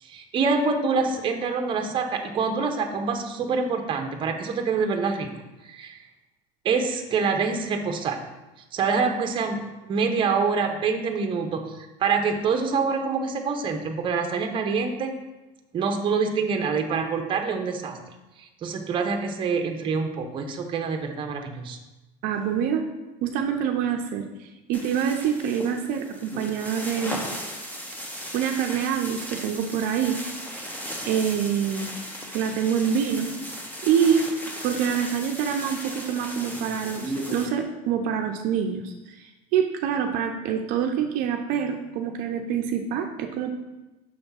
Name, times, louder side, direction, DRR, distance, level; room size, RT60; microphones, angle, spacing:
voice 1, 0.0-5.3 5.6-6.0 6.6-8.2 8.7-15.1 15.7-18.0 18.4-21.8, right 5 dB, 30° right, 4 dB, 0.8 m, -26 dB
voice 2, 22.2-22.8 23.2-27.2 28.3-30.2 31.0-31.9 32.3-33.3 33.8-34.3 34.6-43.5, right 8 dB, 60° right, 4 dB, 0.6 m, -26 dB
sound 1, 24.7-37.5, equal, 10° left, 0.9 m, -36 dB
6.5 x 3.5 x 5.5 m, 1.1 s
cardioid pair, 140°, 16 cm